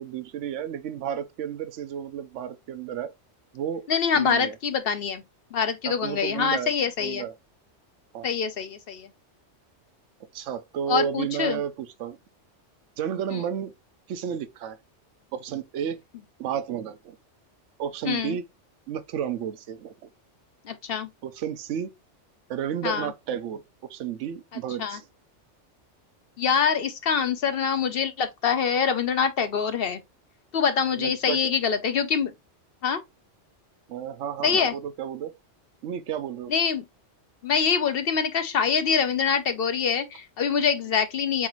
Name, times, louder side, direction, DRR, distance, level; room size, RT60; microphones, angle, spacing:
voice 1, 0.0-3.1 3.5-3.9 4.1-4.6 5.9-6.7 7.0-7.3 8.1-8.3 10.3-12.2 13.0-13.7 14.1-14.8 15.3-16.0 16.4-17.2 17.8-18.4 18.9-19.9 21.2-21.9 22.5-23.6 23.9-25.0 30.9-31.5 33.9-35.4 35.8-36.5, right 8 dB, 80° right, 1.0 m, -32 dB
voice 2, 3.9-5.2 5.5-7.2 8.2-9.1 10.9-11.6 13.3-13.4 18.0-18.4 20.6-21.1 22.8-23.1 24.8-25.0 26.4-30.0 30.5-32.3 32.8-33.0 34.4-34.7 36.5-36.8 37.4-41.5, left 6 dB, 60° left, 0.8 m, -25 dB
7.1 x 2.5 x 3.0 m
omnidirectional pair, 1.2 m